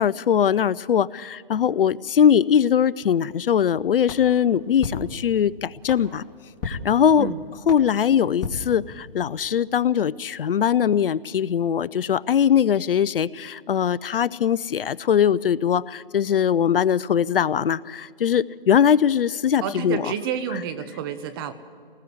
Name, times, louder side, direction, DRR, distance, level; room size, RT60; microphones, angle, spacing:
voice 1, 0.0-6.2 6.6-7.3 7.7-20.1, left 8 dB, 70° left, 21 dB, 0.6 m, -21 dB
sound 1, 4.0-9.4, left 4 dB, 25° left, 2.1 m, -37 dB
voice 2, 19.6-21.5, right 8 dB, 25° right, 11 dB, 0.9 m, -29 dB
30.0 x 19.5 x 4.8 m, 2.3 s
hypercardioid pair, 150°, 29 cm